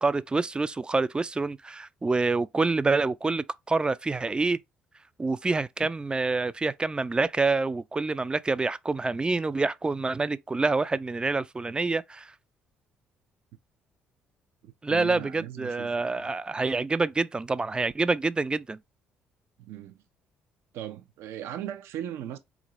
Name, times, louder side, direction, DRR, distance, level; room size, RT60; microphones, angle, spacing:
voice 1, 0.0-4.6 5.2-12.3 14.8-18.8, right 3 dB, 20° right, 0.3 m, -27 dB
voice 2, 14.6-16.2 19.6-20.0 20.7-22.4, right 11 dB, 70° right, 0.6 m, -38 dB
3.9 x 2.5 x 3.0 m
hypercardioid pair, 55°, 5 cm